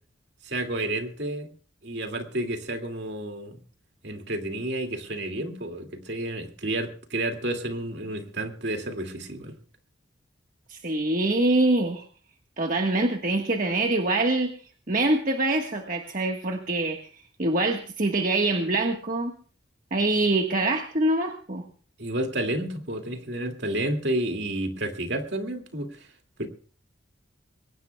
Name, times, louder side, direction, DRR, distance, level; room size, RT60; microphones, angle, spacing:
voice 1, 0.4-1.5 1.8-3.6 4.0-9.6 22.0-26.1 26.4-26.5, right 1 dB, 60° right, 2.3 m, -30 dB
voice 2, 10.7-12.0 12.6-14.5 14.9-17.1 17.4-19.3 19.9-21.6, right 2 dB, 45° right, 1.4 m, -24 dB
22.5 x 18.5 x 2.3 m
head